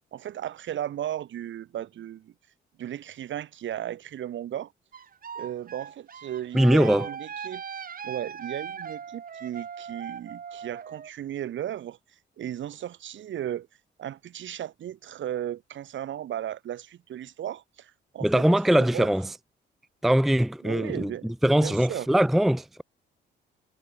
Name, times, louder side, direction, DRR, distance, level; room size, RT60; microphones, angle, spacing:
voice 1, 0.1-2.3 2.8-4.7 5.3-7.6 8.0-12.0 12.4-13.7 14.0-18.4 18.7-19.1 20.6-21.3 21.6-22.1, right 11 dB, 70° right, 6.7 m, -35 dB
sound 1, 4.9-11.1, right 7 dB, 45° right, 2.8 m, -39 dB
voice 2, 6.5-7.1 18.2-19.3 20.0-22.8, right 1 dB, ahead, 0.5 m, -22 dB
cardioid pair, 90°, 20 cm